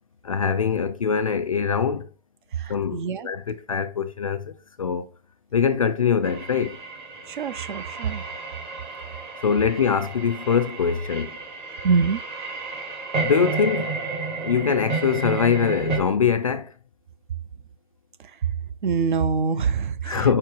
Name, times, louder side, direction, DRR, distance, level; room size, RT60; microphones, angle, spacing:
voice 1, 0.2-2.1 2.7-4.5 4.8-5.1 5.5-6.8 9.4-11.3 13.2-14.0 14.4-16.7 20.0-20.4, left 6 dB, 35° left, 0.4 m, -23 dB
voice 2, 2.5-3.3 7.3-8.2 11.8-12.2 18.8-20.4, right 5 dB, 50° right, 0.7 m, -25 dB
sound 1, 6.2-16.0, right 3 dB, 15° right, 1.0 m, -32 dB
5.8 x 4.5 x 4.5 m
hypercardioid pair, 160°, 32 cm